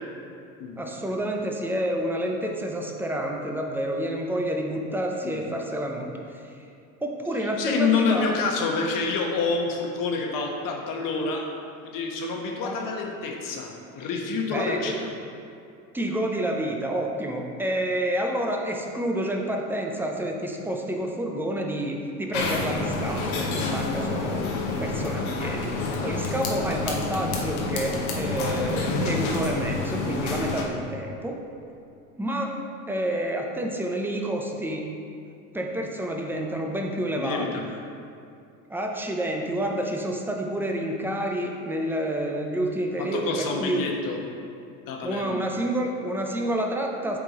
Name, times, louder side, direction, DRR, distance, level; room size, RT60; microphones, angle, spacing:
voice 1, 0.8-6.1 7.0-8.3 12.6-12.9 14.3-14.9 15.9-24.4 24.8-25.7 26.0-31.4 32.2-32.6 32.9-34.9 35.5-37.5 38.7-43.9 45.0-47.2, right 1 dB, 5° right, 1 dB, 0.7 m, -29 dB
voice 2, 7.4-11.5 11.8-15.1 37.2-37.7 43.0-44.2 44.9-45.4, left 4 dB, 50° left, 1 dB, 1.2 m, -28 dB
sound 1, 22.3-30.6, left 3 dB, 85° left, 1.1 m, -28 dB
8.1 x 3.8 x 3.7 m, 2.5 s
hypercardioid pair, 90°, 42 cm